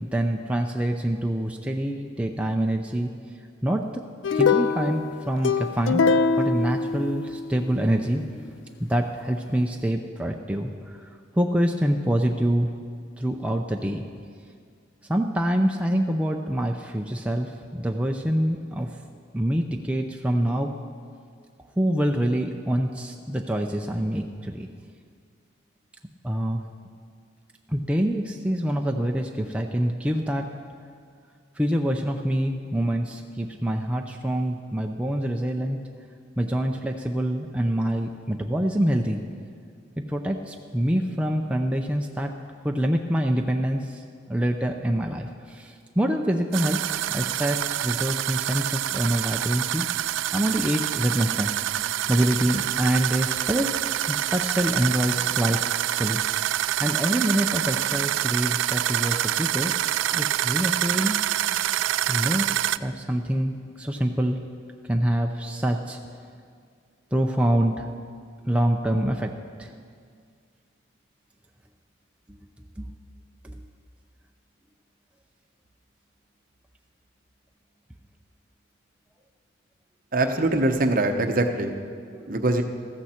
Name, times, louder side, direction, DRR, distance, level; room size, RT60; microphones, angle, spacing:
voice 1, 0.0-3.1 3.6-4.0 4.3-6.0 6.4-8.5 8.8-11.1 11.4-12.7 13.2-14.0 15.1-18.9 19.3-20.7 21.8-24.7 26.2-26.6 27.7-30.5 31.6-35.8 36.4-39.2 40.0-42.3 42.6-44.0 44.3-49.9 50.3-51.5 52.1-53.7 54.1-56.2 56.8-59.7 60.1-61.2 62.1-62.5 62.8-64.4 64.9-66.0 67.1-67.9 68.5-69.3 69.6-69.7 72.8-72.9 73.4-73.6 82.1-82.3, right 1 dB, 5° right, 2 dB, 0.5 m, -25 dB
sound 1, 4.2-7.6, left 4 dB, 80° left, 0.5 m, -23 dB
sound 2, 46.5-62.8, right 12 dB, 80° right, 0.3 m, -26 dB
voice 2, 80.1-81.8 82.3-82.6, right 2 dB, 45° right, 5 dB, 0.9 m, -23 dB
14.5 x 14.0 x 4.4 m, 2.2 s
head